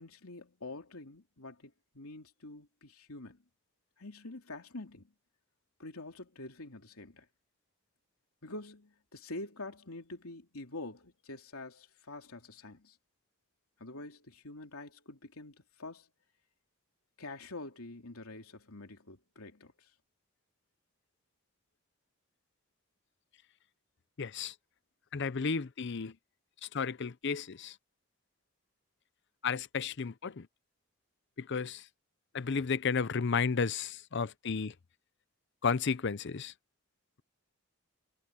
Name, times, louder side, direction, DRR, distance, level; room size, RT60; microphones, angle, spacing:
voice 1, 0.0-3.4 4.0-5.1 5.8-7.3 8.4-13.0 13.8-16.1 17.2-19.9, left 2 dB, 90° left, 3.1 m, -46 dB
voice 2, 24.2-24.5 25.1-26.1 26.6-27.7 29.4-30.5 31.4-31.9 32.3-34.7 35.6-36.5, left 5 dB, 55° left, 0.6 m, -33 dB
head